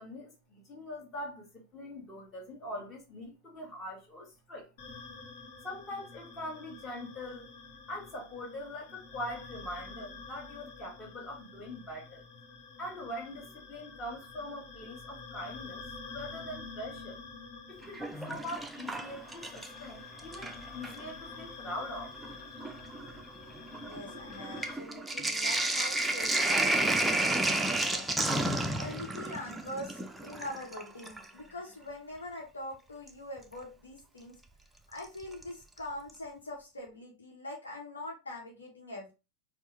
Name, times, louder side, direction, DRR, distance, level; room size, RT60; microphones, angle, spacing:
voice 1, 0.0-4.7 5.6-7.5 7.9-12.2 12.8-17.2 17.7-22.2, left 1 dB, 25° left, 1.5 m, -42 dB
sound 1, 4.8-24.7, left 4 dB, 50° left, 1.1 m, -48 dB
Sink (filling or washing), 17.8-19.9 20.2-21.0 21.8-21.9 22.2-31.3 33.1-33.2 35.0-35.4 35.8-35.9 36.1-36.2, right 2 dB, 5° right, 0.4 m, -31 dB
voice 2, 23.8-28.1 28.5-34.4 34.9-39.1, left 1 dB, 75° left, 0.9 m, -43 dB
4.4 x 2.1 x 3.2 m
figure-of-eight pair, 90°, 0 cm